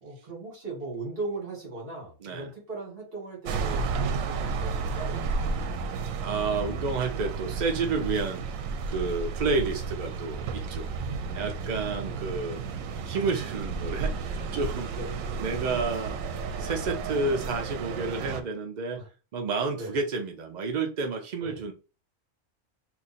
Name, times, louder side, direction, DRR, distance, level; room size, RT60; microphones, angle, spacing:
voice 1, 0.0-6.0 11.8-12.3 14.9-15.2 19.0-19.1 19.8-20.0 21.4-21.6, right 3 dB, 45° right, -2 dB, 1.8 m, -39 dB
sound 1, 3.5-18.4, right 4 dB, 85° right, 1.0 m, -32 dB
voice 2, 6.2-8.4 8.9-10.9 11.3-12.6 13.0-14.9 15.4-16.2 16.6-19.0 19.3-21.7, right 4 dB, 70° right, 3 dB, 0.4 m, -30 dB
2.9 x 2.5 x 4.1 m, 0.34 s
omnidirectional pair, 1.3 m